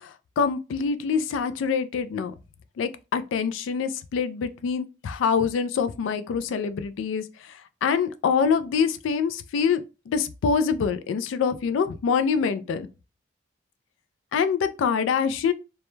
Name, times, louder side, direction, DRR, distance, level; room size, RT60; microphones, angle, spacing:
voice 1, 0.0-2.3 2.8-7.3 7.8-12.9 14.3-15.5, left 6 dB, 90° left, 0.3 m, -25 dB
2.2 x 2.1 x 3.0 m
head